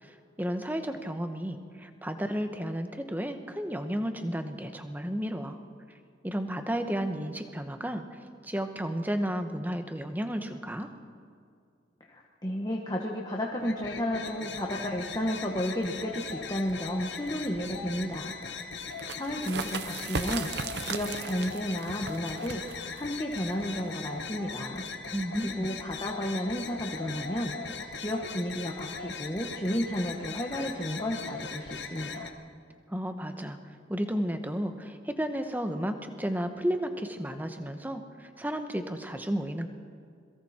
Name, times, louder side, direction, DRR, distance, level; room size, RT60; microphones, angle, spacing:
voice 1, 0.0-5.6 6.2-10.9 25.1-25.7 32.9-39.7, equal, 10° right, 7 dB, 1.1 m, -33 dB
voice 2, 12.1-18.3 19.2-24.8 25.3-27.5 28.0-32.3, equal, 20° left, 0 dB, 1.5 m, -32 dB
sound 1, 13.6-32.3, left 5 dB, 70° left, 1.5 m, -39 dB
sound 2, 18.9-24.2, right 4 dB, 60° right, 1.0 m, -38 dB
27.0 x 22.5 x 4.4 m, 2.3 s
head